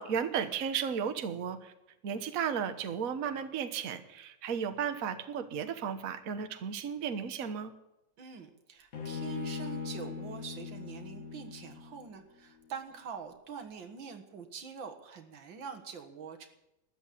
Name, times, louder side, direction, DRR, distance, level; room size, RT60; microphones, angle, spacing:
voice 1, 0.0-1.7 2.0-7.7, right 7 dB, 50° right, 8 dB, 1.4 m, -34 dB
voice 2, 8.2-16.5, right 6 dB, 85° right, 6 dB, 2.3 m, -45 dB
Bowed string instrument, 8.9-12.2, left 5 dB, 50° left, 2.1 m, -40 dB
13.0 x 11.5 x 8.5 m, 0.91 s
omnidirectional pair, 2.0 m